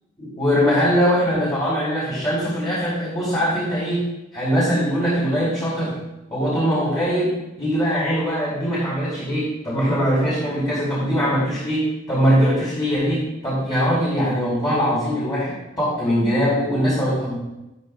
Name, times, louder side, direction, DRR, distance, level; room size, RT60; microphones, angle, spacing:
voice 1, 0.2-4.1 4.3-6.0 6.3-17.3, equal, 25° left, -9 dB, 4.8 m, -21 dB
15.0 x 14.0 x 2.6 m, 0.94 s
head